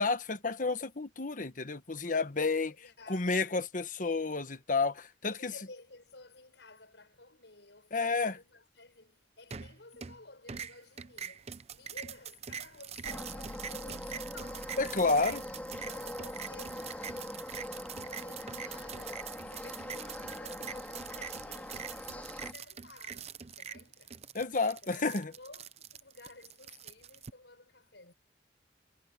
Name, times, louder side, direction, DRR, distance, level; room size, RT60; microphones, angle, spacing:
voice 1, 0.0-2.7 3.1-5.5 7.9-8.4 14.8-15.4 24.3-25.3, left 3 dB, 50° left, 1.3 m, -30 dB
voice 2, 2.5-3.6 5.2-15.5 15.8-17.5 18.0-24.2 24.8-28.1, left 3 dB, 90° left, 6.5 m, -54 dB
sound 1, 9.5-10.2 10.5-27.3, right 7 dB, 40° right, 0.7 m, -44 dB
sound 2, 13.0-22.5, left 1 dB, 10° left, 2.1 m, -42 dB
head